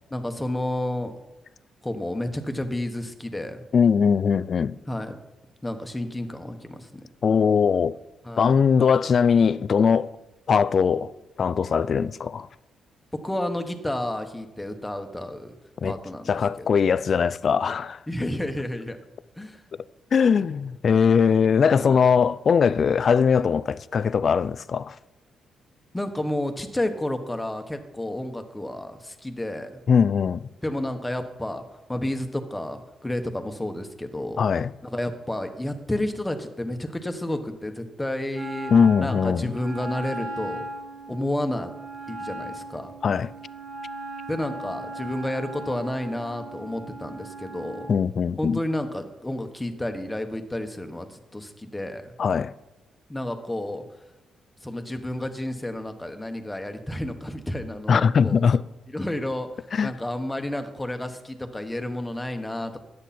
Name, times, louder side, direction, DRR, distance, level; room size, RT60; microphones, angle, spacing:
voice 1, 0.1-1.1 1.8-3.6 4.9-5.2 5.6-7.0 8.2-8.6 13.2-15.6 15.8-16.3 16.6-16.7 18.1-19.0 19.4-19.6 21.7-22.1 25.9-29.8 30.6-31.6 31.9-34.5 34.8-38.7 39.0-40.7 41.1-41.7 42.1-42.9 44.3-47.9 48.4-52.1 53.1-53.8 54.6-58.5 58.9-62.8, left 1 dB, 10° left, 1.3 m, -31 dB
voice 2, 3.7-4.8 7.2-8.0 8.4-10.1 10.5-11.1 11.4-12.5 15.8-15.9 16.3-18.0 20.1-25.0 29.9-30.5 34.4-34.7 38.7-39.5 43.0-43.3 47.9-48.6 52.2-52.5 57.9-58.6 59.7-59.9, left 6 dB, 50° left, 0.4 m, -20 dB
Wind instrument woodwind instrument, 38.3-47.9, right 2 dB, 80° right, 5.2 m, -38 dB
13.5 x 9.8 x 4.3 m
cardioid pair, 90°, 0 cm